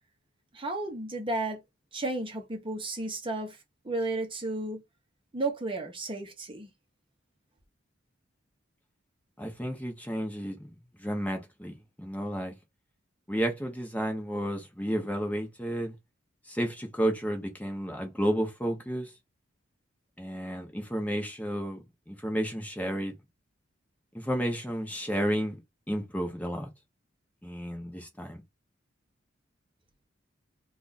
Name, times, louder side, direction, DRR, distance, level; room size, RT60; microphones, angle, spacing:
voice 1, 0.5-1.6 1.9-3.6 3.8-4.8 5.3-6.7, right 2 dB, 25° right, 0.8 m, -33 dB
voice 2, 9.4-10.6 11.0-12.5 13.3-15.9 16.5-19.1 20.2-23.1 24.1-25.6 25.9-26.7 27.4-28.4, equal, 10° left, 0.8 m, -32 dB
3.0 x 2.4 x 3.9 m
head